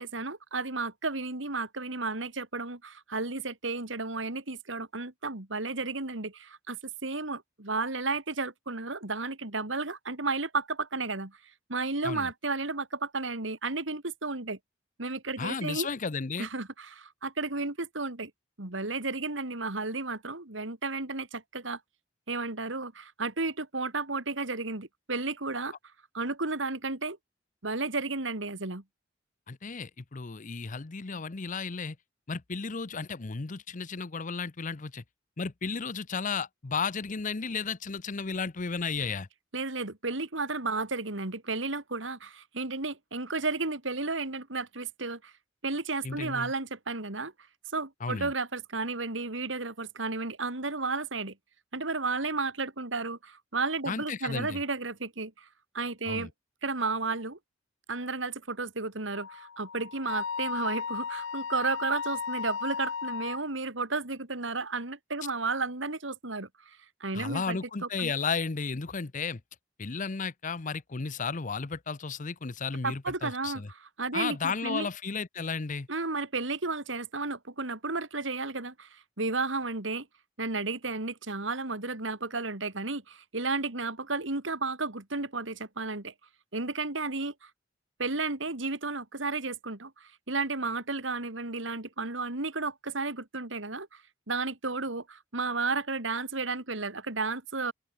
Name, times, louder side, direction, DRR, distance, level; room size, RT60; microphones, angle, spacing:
voice 1, 0.0-11.4 11.7-14.6 15.0-15.9 16.4-18.3 18.6-21.8 22.3-25.7 26.1-27.2 27.6-28.8 39.5-45.3 45.6-47.3 47.7-51.3 51.7-55.5 55.7-56.3 56.6-57.4 57.9-67.6 68.0-68.1 72.8-74.9 75.9-80.1 80.4-86.1 86.5-87.5 88.0-94.0 94.3-97.7, right 3 dB, 80° right, 2.8 m, -33 dB
voice 2, 15.4-16.5 29.5-32.0 32.3-35.0 35.4-39.3 46.0-46.5 48.0-48.3 53.9-54.6 56.1-56.3 67.1-69.4 69.8-73.7 74.1-75.9, left 5 dB, 45° left, 0.8 m, -33 dB
Wind instrument woodwind instrument, 59.1-63.4, left 6 dB, 80° left, 0.7 m, -35 dB
open air
head